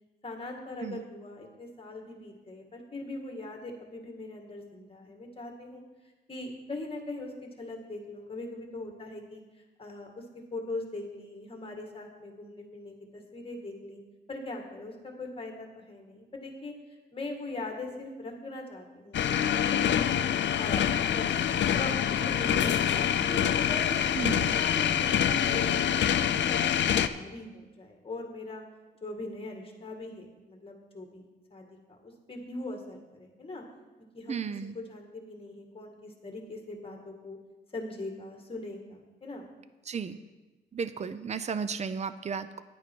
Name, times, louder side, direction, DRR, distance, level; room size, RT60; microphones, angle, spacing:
voice 1, 0.2-5.8 6.3-9.4 9.8-10.2 10.5-14.0 14.3-16.7 17.1-20.2 20.6-21.3 21.8-23.9 24.3-28.6 29.0-33.6 34.1-34.4 34.7-37.4 37.7-39.5, left 2 dB, 30° left, 2 dB, 2.0 m, -40 dB
sound 1, 19.1-27.1, left 9 dB, 80° left, 0.5 m, -26 dB
voice 2, 24.2-24.5 34.3-34.7 39.9-40.2 40.7-42.6, right 6 dB, 40° right, 12 dB, 0.5 m, -34 dB
10.5 x 9.2 x 4.6 m, 1.2 s
wide cardioid pair, 110°, 18 cm